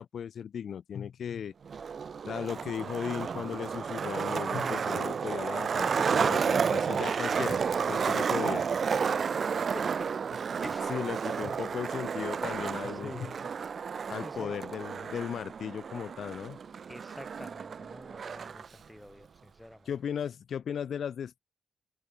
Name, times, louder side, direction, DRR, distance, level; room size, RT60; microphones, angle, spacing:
voice 1, 0.0-1.5 2.3-7.6 7.9-8.7 10.9-13.3 14.1-16.6 19.9-21.4, left 8 dB, 65° left, 2.4 m, -36 dB
Skateboard, 1.6-18.7, right 6 dB, 50° right, 0.3 m, -31 dB
voice 2, 9.0-10.1 10.6-11.0 13.0-13.3 14.2-14.5 16.9-19.9, left 1 dB, 5° left, 2.1 m, -46 dB
wide cardioid pair, 165°, 0 cm